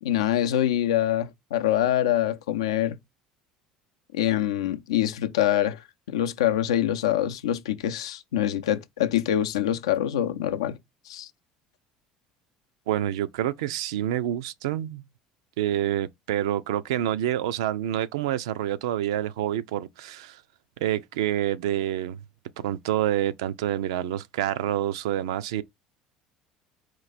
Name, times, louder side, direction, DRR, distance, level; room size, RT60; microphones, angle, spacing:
voice 1, 0.0-3.0 4.1-10.8 11.1-11.3, left 11 dB, 90° left, 0.5 m, -25 dB
voice 2, 12.9-15.0 15.6-20.4 20.8-22.2 22.6-25.6, right 12 dB, 85° right, 0.4 m, -27 dB
4.5 x 2.5 x 4.0 m
hypercardioid pair, 75°, 3 cm